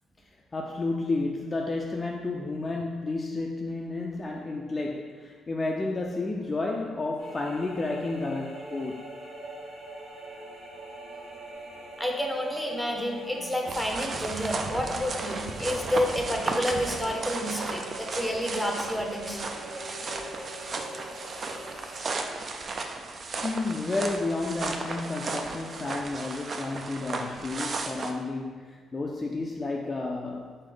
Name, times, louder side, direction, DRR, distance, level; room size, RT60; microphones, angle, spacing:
voice 1, 0.5-9.1 23.4-30.6, left 3 dB, 30° left, 0 dB, 0.3 m, -31 dB
sound 1, 7.2-22.0, right 1 dB, 85° right, 1.1 m, -43 dB
voice 2, 12.0-19.4, left 1 dB, ahead, 1 dB, 0.7 m, -30 dB
sound 2, 13.6-28.1, right 3 dB, 45° right, 0.4 m, -34 dB
4.1 x 3.3 x 3.7 m, 1.5 s
cardioid pair, 90°, 0 cm